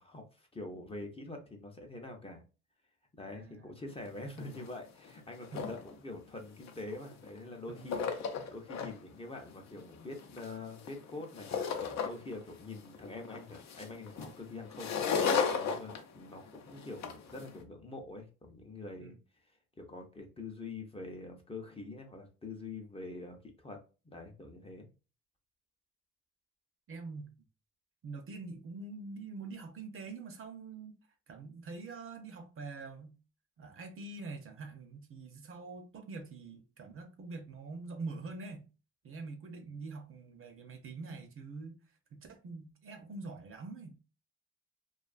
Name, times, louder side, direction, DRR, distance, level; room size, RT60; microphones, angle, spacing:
voice 1, 0.0-2.4 3.2-19.2 19.8-24.9, left 2 dB, 20° left, 0.6 m, -45 dB
voice 2, 3.3-3.7 5.5-5.6 7.7-7.9 19.0-19.1 26.9-27.3 28.0-30.9 31.3-33.2 33.6-38.7 39.0-41.8 42.1-44.0, right 3 dB, 45° right, 0.6 m, -45 dB
sound 1, 4.1-4.2 4.4-4.7 5.0-5.9 6.6-7.4 7.7-8.9 9.3-12.4 12.7-17.5, left 6 dB, 65° left, 0.6 m, -35 dB
2.4 x 2.3 x 2.4 m
cardioid pair, 90°, 30 cm